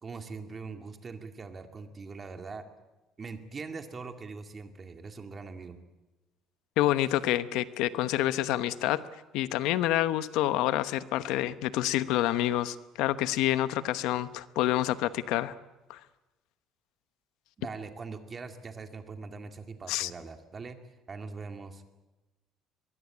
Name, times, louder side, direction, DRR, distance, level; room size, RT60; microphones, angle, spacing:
voice 1, 0.0-2.7 3.2-5.8 17.6-20.8 21.1-21.8, right 4 dB, 25° right, 6 dB, 2.1 m, -42 dB
voice 2, 6.8-9.0 9.3-15.5 15.9-16.0 19.9-20.1, left 14 dB, 80° left, 13 dB, 1.0 m, -28 dB
23.0 x 21.5 x 8.5 m, 1.1 s
cardioid pair, 150°, 0 cm